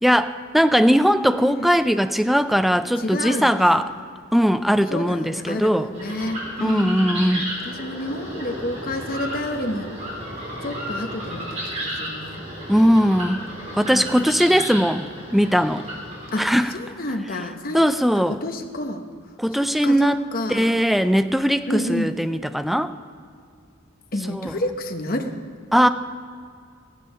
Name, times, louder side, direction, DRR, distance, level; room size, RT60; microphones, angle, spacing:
voice 1, 0.0-3.9 4.3-5.9 6.6-7.5 12.7-13.5 13.7-15.1 15.3-15.8 16.4-16.7 17.7-18.4 19.4-20.2 20.5-22.9 24.3-24.5 25.7-25.9, equal, ahead, 10 dB, 0.3 m, -19 dB
voice 2, 1.2-1.7 3.0-3.8 4.9-9.9 10.6-12.4 13.9-14.7 16.3-17.9 18.3-19.0 19.5-20.7 21.7-22.1 24.1-25.4, left 1 dB, 45° left, 5 dB, 1.0 m, -30 dB
sound 1, 5.9-16.6, equal, 35° right, 4.0 m, -33 dB
15.0 x 10.5 x 5.6 m, 2.3 s
head